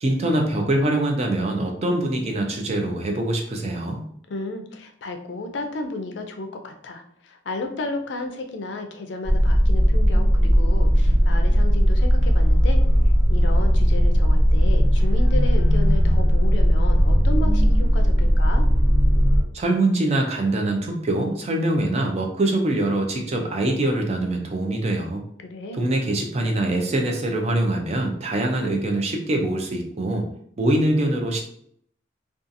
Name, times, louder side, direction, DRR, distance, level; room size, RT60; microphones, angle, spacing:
voice 1, 0.0-4.0 19.5-25.2 25.7-30.3 30.6-31.4, right 1 dB, 35° right, 3 dB, 0.4 m, -23 dB
voice 2, 4.3-12.8 13.3-18.7 25.5-25.8, left 2 dB, 70° left, 5 dB, 0.4 m, -33 dB
sound 1, 9.3-19.4, equal, 85° right, 1.2 m, -17 dB
2.6 x 2.3 x 2.5 m, 0.67 s
head